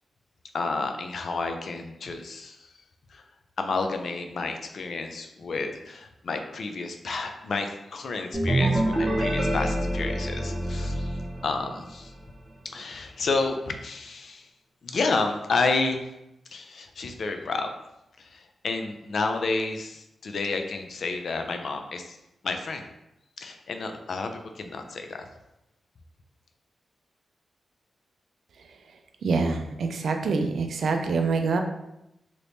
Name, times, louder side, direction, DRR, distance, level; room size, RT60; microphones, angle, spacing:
voice 1, 0.5-2.6 3.1-3.2 3.6-12.1 12.7-14.5 14.8-16.0 16.5-17.7 18.2-22.2 22.4-22.9 23.4-25.2, left 3 dB, 60° left, 5 dB, 0.4 m, -30 dB
sound 1, 8.3-12.0, right 1 dB, 20° right, 0.9 m, -26 dB
voice 2, 29.2-31.6, right 4 dB, 75° right, 5 dB, 0.4 m, -25 dB
3.3 x 2.9 x 2.6 m, 0.88 s
wide cardioid pair, 120°, 0 cm